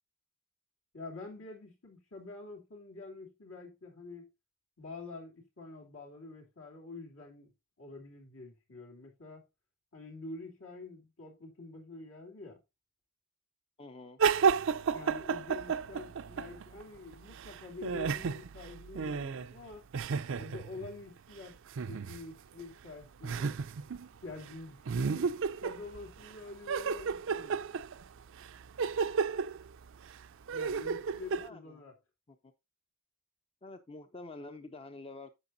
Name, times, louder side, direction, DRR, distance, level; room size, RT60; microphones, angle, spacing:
voice 1, 0.9-4.3 4.8-7.5 7.8-9.4 9.9-12.6 14.9-19.9 20.3-21.6 21.9-23.5 24.2-27.6 30.5-31.9, left 3 dB, 70° left, 3.1 m, -47 dB
voice 2, 13.8-14.2 30.6-30.8 31.4-31.8 32.3-32.5 33.6-35.3, left 2 dB, 25° left, 0.7 m, -48 dB
sound 1, 14.2-16.8 17.1-20.9 21.7-22.2 22.6-22.7 23.2-24.1 24.4-24.5 24.9-26.3 26.7-31.5, right 6 dB, 65° right, 0.5 m, -32 dB
10.5 x 7.9 x 2.6 m
head